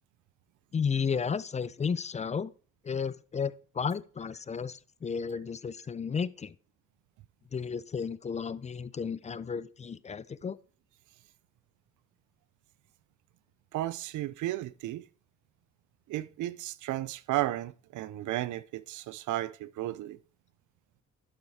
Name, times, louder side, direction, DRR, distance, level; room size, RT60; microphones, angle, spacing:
voice 1, 0.7-2.5 2.8-6.5 7.5-10.6, left 6 dB, 25° left, 0.4 m, -33 dB
voice 2, 13.7-15.1 16.1-20.2, right 14 dB, 75° right, 0.5 m, -34 dB
11.5 x 4.8 x 4.2 m
cardioid pair, 90°, 30 cm